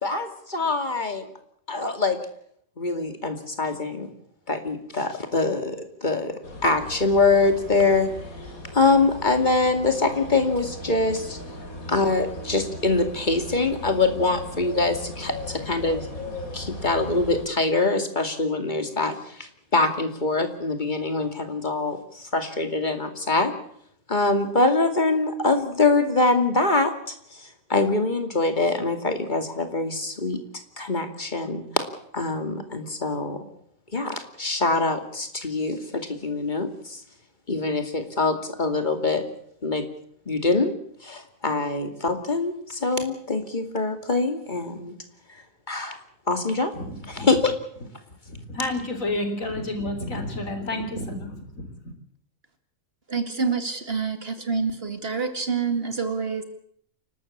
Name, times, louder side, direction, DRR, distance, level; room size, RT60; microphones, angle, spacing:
voice 1, 0.0-1.3 1.7-2.2 2.8-4.1 4.5-6.3 6.6-8.1 8.7-11.4 11.9-16.1 16.5-23.5 24.1-30.4 30.8-31.9 32.1-33.4 33.9-37.0 37.5-39.2 39.6-39.8 40.3-40.7 41.0-44.9 45.7-46.0 46.3-46.7 47.1-47.5, left 3 dB, 35° left, 7 dB, 2.6 m, -24 dB
sound 1, 6.4-17.5, left 2 dB, 85° left, 4.1 m, -38 dB
voice 2, 46.8-47.3 48.3-51.7, left 1 dB, 70° left, 6 dB, 4.1 m, -30 dB
voice 3, 53.1-56.4, right 5 dB, 45° right, 7 dB, 2.4 m, -27 dB
28.5 x 13.0 x 8.6 m, 0.68 s
omnidirectional pair, 1.5 m